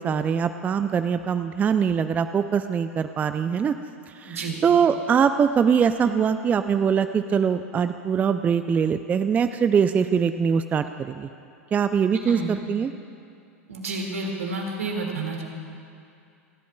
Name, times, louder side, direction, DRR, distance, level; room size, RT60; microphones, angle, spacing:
voice 1, 0.0-3.8 4.1-11.3 11.7-12.9, right 7 dB, 20° right, 10 dB, 0.4 m, -22 dB
voice 2, 4.3-4.6 12.3-12.5 13.7-15.4, right 3 dB, 75° right, 0 dB, 2.0 m, -30 dB
29.5 x 11.5 x 2.2 m, 2.5 s
figure-of-eight pair, 90°, 8 cm